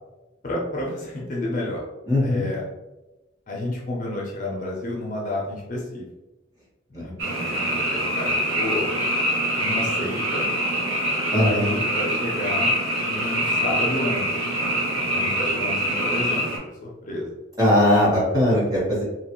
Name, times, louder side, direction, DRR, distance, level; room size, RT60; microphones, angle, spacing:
voice 1, 0.4-1.8 2.2-2.6 3.5-6.1 6.9-8.3 8.5-8.9 9.6-10.5 11.4-12.7 13.0-14.2 15.1-17.3, left 2 dB, 40° left, -3 dB, 0.5 m, -30 dB
voice 2, 2.1-2.5 6.9-7.0 11.3-11.8 17.6-19.0, left 1 dB, 20° right, -6 dB, 1.1 m, -20 dB
Frog, 7.2-16.6, equal, 75° right, 0.8 m, -24 dB
2.9 x 2.4 x 2.9 m, 1.0 s
head